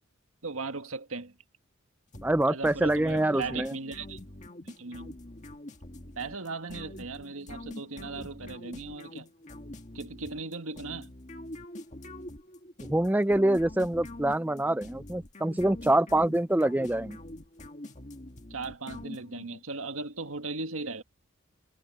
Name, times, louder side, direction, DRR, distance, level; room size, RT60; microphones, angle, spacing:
voice 1, 0.4-1.3 2.5-4.2 4.6-5.1 6.1-9.3 9.9-11.1 18.5-21.0, right 3 dB, 85° right, 1.7 m, -37 dB
sound 1, 2.1-19.6, left 1 dB, 35° left, 1.7 m, -45 dB
voice 2, 2.2-3.7 12.8-17.2, right 1 dB, 10° right, 0.4 m, -25 dB
head